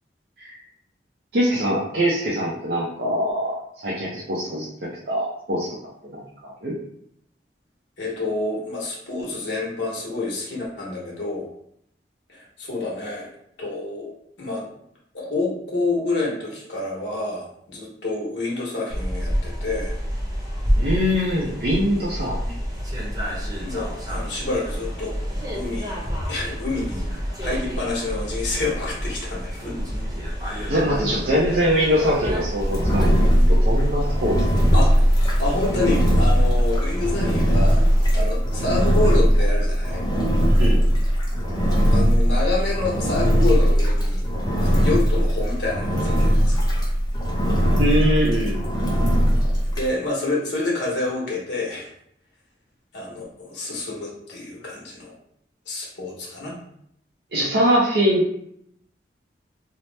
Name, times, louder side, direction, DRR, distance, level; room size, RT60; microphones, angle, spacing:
voice 1, 1.3-4.7 5.1-5.8 6.1-6.7 20.8-22.6 30.7-33.2 33.6-34.3 40.6-40.9 47.8-48.7 57.3-58.4, equal, 60° right, -6 dB, 0.5 m, -23 dB
voice 2, 8.0-11.5 12.3-13.3 13.6-14.7 15.1-19.9 22.4-22.5 23.6-25.2 25.5-26.0 26.3-27.1 27.4-29.7 30.4-30.8 34.7-34.9 35.4-37.8 38.1-40.0 41.9-44.3 44.6-46.5 49.7-51.9 52.9-55.1 55.7-56.5, left 2 dB, 80° left, -4 dB, 0.9 m, -28 dB
sound 1, 18.9-38.2, equal, 20° right, 0.7 m, -28 dB
Engine, 32.6-49.9, equal, 20° left, 0.5 m, -19 dB
2.8 x 2.0 x 3.2 m, 0.72 s
head